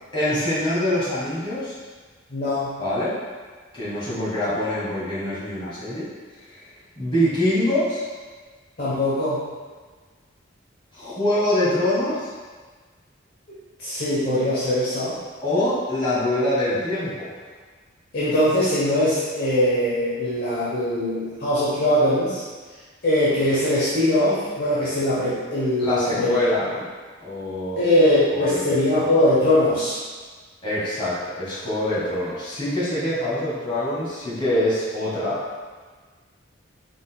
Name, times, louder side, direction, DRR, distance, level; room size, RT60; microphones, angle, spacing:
voice 1, 0.1-1.8 2.8-3.2 3.7-6.1 6.5-6.6 7.0-8.0 10.9-12.3 15.4-17.3 25.8-26.9 27.2-28.0 28.3-28.7 30.6-35.4, left 1 dB, 25° left, -10 dB, 1.5 m, -24 dB
voice 2, 2.3-2.8 8.8-9.4 13.8-15.2 18.1-22.4 23.0-26.3 27.8-30.0, left 1 dB, 50° left, -10 dB, 0.9 m, -21 dB
4.9 x 4.0 x 2.3 m, 1.4 s
head